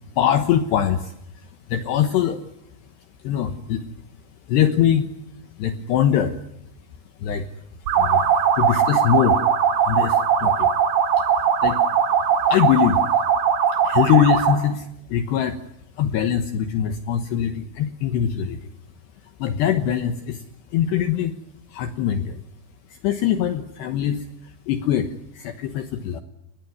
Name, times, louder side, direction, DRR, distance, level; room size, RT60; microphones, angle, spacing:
voice 1, 0.1-2.4 3.2-3.9 4.5-5.1 5.6-6.4 7.2-7.5 7.9-9.4 9.7-10.7 11.2-11.8 12.3-13.1 13.7-15.6 15.9-18.7 19.2-20.4 20.7-21.3 21.7-22.4 22.9-26.2, left 9 dB, 70° left, 8 dB, 3.0 m, -23 dB
sound 1, 7.9-14.7, right 7 dB, 75° right, 5.2 m, -20 dB
29.5 x 21.0 x 9.5 m, 0.79 s
omnidirectional pair, 5.7 m